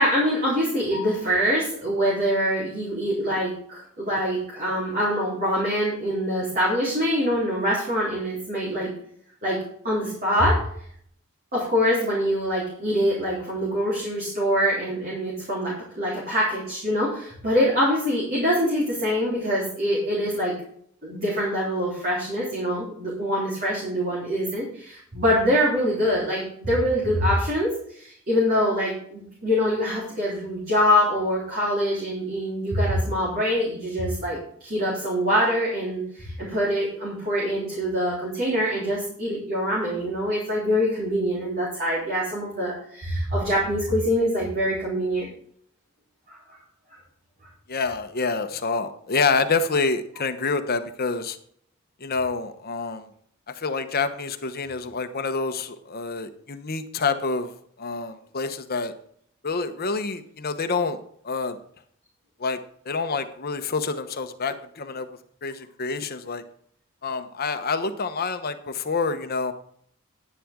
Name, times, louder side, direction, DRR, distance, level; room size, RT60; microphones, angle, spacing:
voice 1, 0.0-8.9 9.4-9.6 9.8-10.6 11.5-20.6 21.0-45.3 46.3-46.4, equal, 45° right, -6 dB, 3.8 m, -24 dB
voice 2, 47.7-51.4 52.0-53.1 53.5-57.5 57.8-58.9 59.4-61.0 61.2-61.6 62.4-62.6 62.9-65.1 65.4-66.4 67.0-69.5, left 4 dB, 50° left, 9 dB, 1.0 m, -27 dB
10.5 x 10.0 x 3.7 m, 0.63 s
head